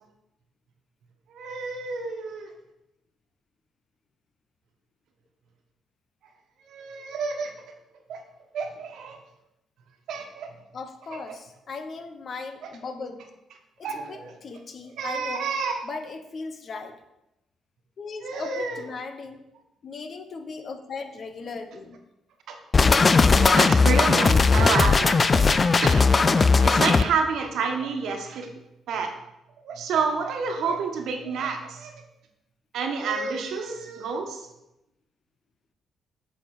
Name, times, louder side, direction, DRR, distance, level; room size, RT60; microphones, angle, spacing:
voice 1, 1.3-2.5 6.6-7.5 8.1-8.2 8.5-9.2 10.1-10.6 11.1-11.4 12.6-12.7 13.8-14.3 15.0-15.8 18.2-18.8 22.5-22.6 23.3-28.5 28.9-29.1 29.6-31.9 32.7-34.5, right 5 dB, 75° right, 4 dB, 1.3 m, -29 dB
voice 2, 10.7-13.3 13.8-15.5 15.8-17.0 18.0-19.4 19.8-22.0 33.1-33.2, left 4 dB, 50° left, 8 dB, 1.0 m, -38 dB
sound 1, 22.7-27.0, left 4 dB, 30° left, 0.4 m, -18 dB
7.3 x 6.5 x 4.8 m, 0.89 s
cardioid pair, 90°, 0 cm